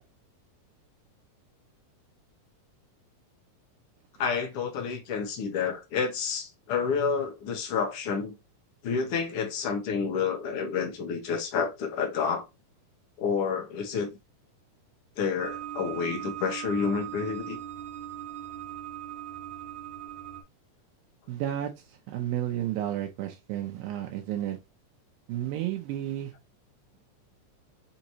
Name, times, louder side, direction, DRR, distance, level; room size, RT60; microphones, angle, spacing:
voice 1, 4.2-8.3 8.8-12.4 13.2-14.1 15.2-17.6, left 6 dB, 65° left, 1.5 m, -29 dB
sound 1, 15.4-20.4, right 11 dB, 60° right, 2.5 m, -39 dB
voice 2, 21.3-21.7 22.1-24.6 25.3-26.3, right 12 dB, 85° right, 2.4 m, -31 dB
6.3 x 2.9 x 2.7 m
omnidirectional pair, 4.0 m